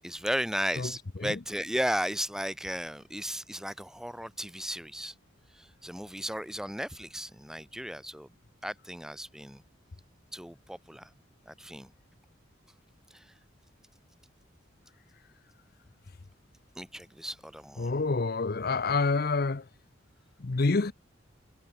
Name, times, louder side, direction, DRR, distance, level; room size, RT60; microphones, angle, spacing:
voice 1, 0.0-5.1 5.5-8.3 8.6-9.6 10.3-11.1 11.5-11.9 13.1-13.3 16.8-17.9, equal, 5° right, 3.1 m, -35 dB
voice 2, 17.8-19.6 20.4-20.9, left 3 dB, 50° left, 0.7 m, -27 dB
head